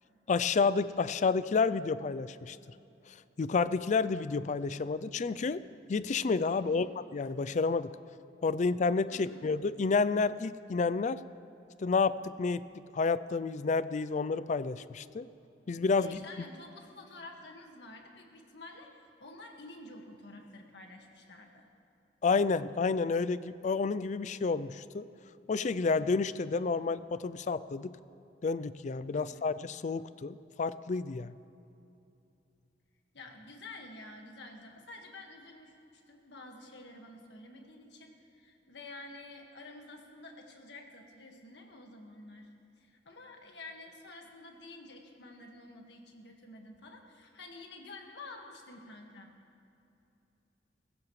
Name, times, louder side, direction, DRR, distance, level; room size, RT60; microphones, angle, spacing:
voice 1, 0.3-2.6 3.4-5.6 5.9-6.9 7.1-7.9 8.4-11.2 11.8-12.6 12.9-15.3 15.7-16.2 22.2-25.0 25.5-27.9 28.4-31.3, left 4 dB, 45° left, 16 dB, 0.4 m, -30 dB
voice 2, 6.6-6.9 9.1-9.4 16.0-21.7 29.1-29.5 33.1-42.5 42.8-49.3, left 2 dB, 70° left, 2 dB, 1.8 m, -50 dB
22.0 x 15.5 x 3.2 m, 2.8 s
head